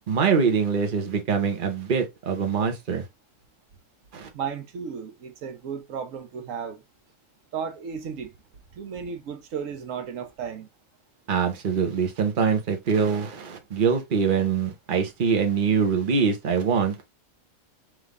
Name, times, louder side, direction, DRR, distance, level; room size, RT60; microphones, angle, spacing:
voice 1, 0.1-3.0 4.1-4.3 11.3-17.0, right 6 dB, 45° right, 1.0 m, -24 dB
voice 2, 4.3-6.8 7.5-8.3 8.7-10.7, right 7 dB, 80° right, 1.2 m, -34 dB
3.6 x 3.3 x 3.6 m
omnidirectional pair, 1.3 m